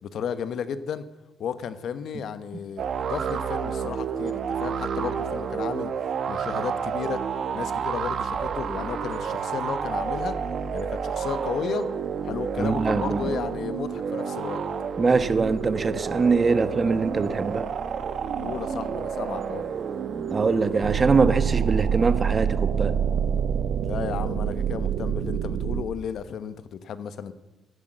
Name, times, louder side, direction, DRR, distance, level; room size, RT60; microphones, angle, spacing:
voice 1, 0.0-1.0 1.4-5.9 6.3-7.2 7.5-10.4 10.7-11.9 12.2-14.6 18.4-19.6 23.8-27.3, left 7 dB, 65° left, 13 dB, 1.1 m, -33 dB
sound 1, 2.8-21.2, right 6 dB, 60° right, 1.2 m, -30 dB
voice 2, 12.6-13.3 15.0-17.7 20.3-22.9, right 4 dB, 35° right, 12 dB, 1.1 m, -23 dB
sound 2, 20.8-25.8, right 8 dB, 75° right, 0.8 m, -26 dB
16.0 x 11.0 x 7.8 m, 1.1 s
cardioid pair, 90°, 0 cm